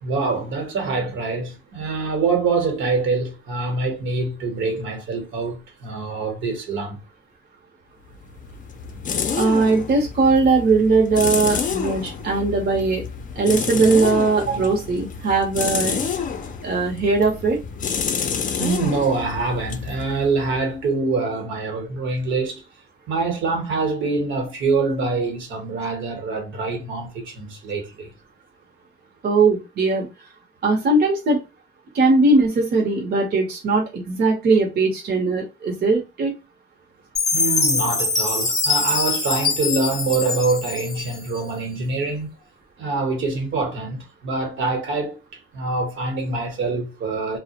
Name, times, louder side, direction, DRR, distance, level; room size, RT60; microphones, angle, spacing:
voice 1, 0.0-7.0 18.6-22.6 23.1-28.1 37.3-42.3 42.8-45.2 45.5-47.4, right 3 dB, 75° right, 1.0 m, -25 dB
sound 1, 8.1-20.8, left 6 dB, 40° left, 0.4 m, -29 dB
voice 2, 9.4-13.0 13.4-16.0 16.6-17.6 29.2-30.1 30.6-31.4 31.9-36.3, right 3 dB, 55° right, 0.7 m, -19 dB
Chime, 37.2-41.4, left 3 dB, 15° left, 0.8 m, -23 dB
2.3 x 2.0 x 2.8 m
cardioid pair, 90°, 20 cm